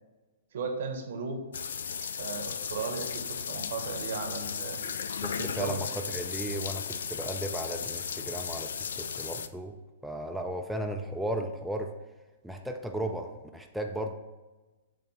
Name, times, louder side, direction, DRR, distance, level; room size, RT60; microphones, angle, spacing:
voice 1, 0.5-1.4 2.2-4.8 5.4-5.7, right 4 dB, 65° right, 5 dB, 1.0 m, -36 dB
sound 1, 1.5-9.5, left 7 dB, 70° left, 0.3 m, -35 dB
voice 2, 5.2-9.8 10.0-11.9 12.4-14.1, right 1 dB, ahead, 2 dB, 0.4 m, -35 dB
7.3 x 2.5 x 5.4 m, 1.2 s
hypercardioid pair, 120°, 0 cm